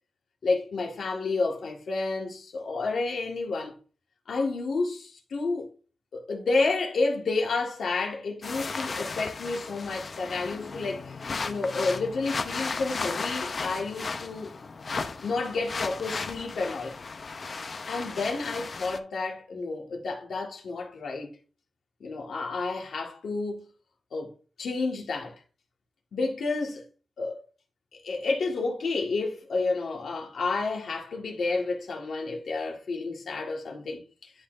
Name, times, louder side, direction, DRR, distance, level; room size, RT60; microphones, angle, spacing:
voice 1, 0.4-3.7 4.3-5.7 6.1-14.6 15.2-17.0 17.9-21.3 22.0-23.7 24.1-24.3 24.6-25.4 26.1-26.8 27.2-27.4 28.0-34.3, left 3 dB, 70° left, 1.7 m, -30 dB
sound 1, 8.4-19.0, left 4 dB, 40° left, 0.6 m, -35 dB
11.0 x 4.1 x 2.6 m
wide cardioid pair, 175°, 0 cm